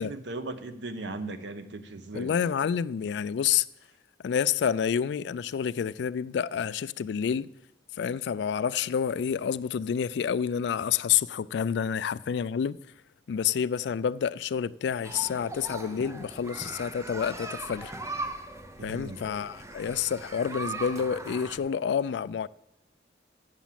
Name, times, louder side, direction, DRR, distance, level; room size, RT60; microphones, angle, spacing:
voice 1, 0.0-2.3 18.8-19.2, right 2 dB, 75° right, 0.8 m, -37 dB
voice 2, 2.1-3.6 4.2-7.5 8.0-12.8 13.3-17.9 18.8-22.5, left 7 dB, 70° left, 0.3 m, -28 dB
sound 1, 15.0-21.6, right 2 dB, 15° right, 0.7 m, -39 dB
8.3 x 7.1 x 7.4 m
head